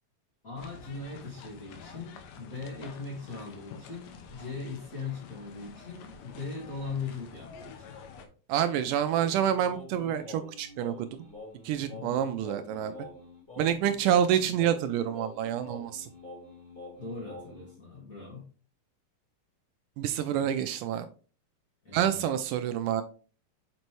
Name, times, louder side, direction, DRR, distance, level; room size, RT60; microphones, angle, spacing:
voice 1, 0.4-8.0 11.9-12.2 17.0-18.5 21.8-22.2, left 4 dB, 35° left, -4 dB, 1.6 m, -40 dB
sound 1, 0.6-8.3, left 6 dB, 85° left, 2.5 m, -48 dB
voice 2, 8.5-11.3 11.6-13.0 13.6-16.1 20.0-21.1 21.9-23.0, right 9 dB, 80° right, 9 dB, 2.0 m, -28 dB
Singing, 9.1-17.7, left 2 dB, 5° left, 2.9 m, -47 dB
6.6 x 5.1 x 3.1 m, 0.37 s
omnidirectional pair, 3.9 m